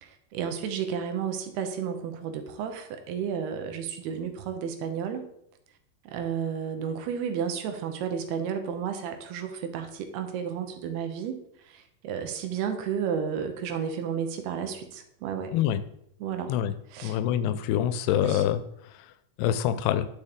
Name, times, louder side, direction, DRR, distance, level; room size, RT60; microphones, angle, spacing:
voice 1, 0.0-5.3 6.1-15.5 16.2-16.5 16.9-17.2 18.1-18.4, right 7 dB, 80° right, 6 dB, 2.9 m, -32 dB
voice 2, 17.0-18.6 19.4-20.1, left 11 dB, 85° left, 12 dB, 2.7 m, -25 dB
10.0 x 6.8 x 3.6 m, 0.76 s
omnidirectional pair, 4.7 m